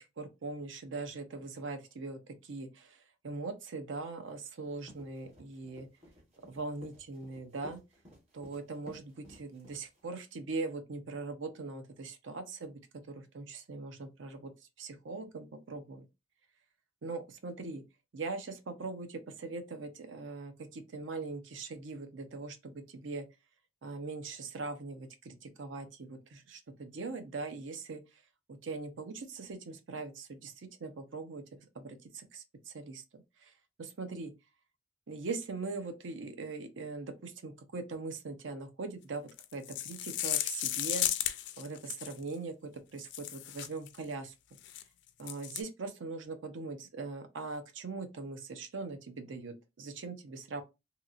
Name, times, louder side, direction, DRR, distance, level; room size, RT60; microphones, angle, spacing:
voice 1, 0.0-5.9 6.5-7.8 8.3-12.8 13.1-14.5 14.8-16.1 17.0-17.8 18.1-23.3 23.8-28.0 28.5-31.4 31.7-33.0 33.4-33.5 33.8-34.3 35.1-41.1 41.6-44.3 45.2-50.6, right 3 dB, 80° right, 0.6 m, -41 dB
sound 1, 4.7-10.1, equal, 35° right, 1.2 m, -55 dB
sound 2, 39.3-42.2 43.0-44.0 44.6-44.8 45.2-45.6, left 12 dB, 65° left, 0.3 m, -34 dB
2.8 x 2.8 x 2.4 m
head